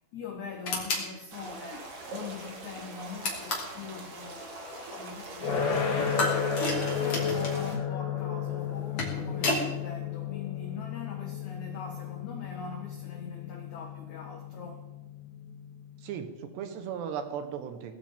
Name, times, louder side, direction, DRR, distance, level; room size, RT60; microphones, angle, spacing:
voice 1, 0.1-6.3 7.0-14.9, left 5 dB, 80° left, 1.7 m, -42 dB
sound 1, 0.6-1.1 3.2-3.8 6.2-7.6 8.7-9.7, left 2 dB, 40° left, 2.7 m, -31 dB
sound 2, 1.3-7.8, right 2 dB, 50° right, 1.7 m, -43 dB
sound 3, 5.4-16.4, left 7 dB, 55° left, 4.0 m, -33 dB
voice 2, 16.0-18.0, right 8 dB, 75° right, 3.2 m, -36 dB
19.0 x 14.5 x 3.7 m
omnidirectional pair, 5.2 m